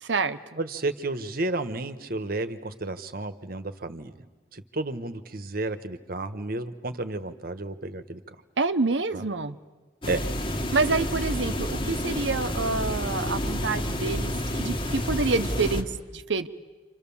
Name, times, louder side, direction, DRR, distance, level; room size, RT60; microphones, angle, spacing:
voice 1, 0.0-0.6 8.6-9.6 10.7-16.5, right 3 dB, 85° right, 10 dB, 0.9 m, -27 dB
voice 2, 0.6-4.2 4.5-8.4 9.1-9.2 10.1-10.3, right 2 dB, 55° right, 10 dB, 1.2 m, -32 dB
sound 1, 10.0-15.8, equal, 30° left, 1.8 m, -29 dB
29.5 x 26.5 x 7.2 m, 1.2 s
head